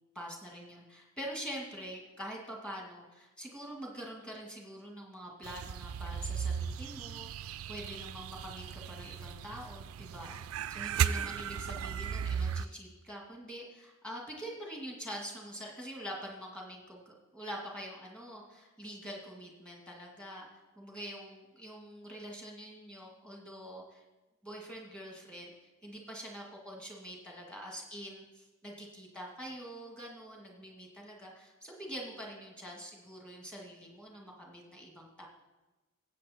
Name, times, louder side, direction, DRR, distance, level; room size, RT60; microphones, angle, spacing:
voice 1, 0.2-20.5 20.8-24.0 24.4-35.3, equal, 5° left, -2 dB, 1.9 m, -45 dB
sound 1, 5.4-12.7, right 7 dB, 85° right, 0.4 m, -36 dB
15.5 x 8.1 x 4.3 m, 1.1 s
head